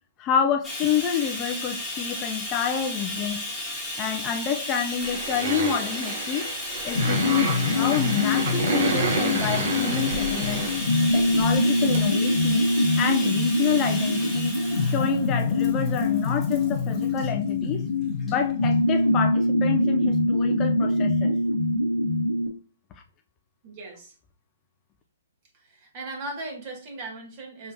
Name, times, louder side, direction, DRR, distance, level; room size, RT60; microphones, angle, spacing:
voice 1, 0.2-3.4 4.0-6.5 6.8-10.7 11.1-12.7 13.0-14.5 14.8-17.9 18.3-21.3, left 7 dB, 25° left, 4 dB, 0.4 m, -28 dB
Bathtub (filling or washing), 0.6-17.3 18.2-18.3 18.7-18.8, left 1 dB, ahead, 1.7 m, -34 dB
sound 1, 5.0-11.5 11.9-12.0 12.3-12.4 12.8-12.9 13.1-13.2, right 4 dB, 65° right, 0.9 m, -30 dB
sound 2, 7.0-22.5, left 2 dB, 90° left, 0.9 m, -24 dB
voice 2, 23.6-24.1 25.5-27.7, right 2 dB, 40° right, 1 dB, 1.9 m, -38 dB
5.6 x 3.5 x 2.7 m, 0.39 s
hypercardioid pair, 145°, 0 cm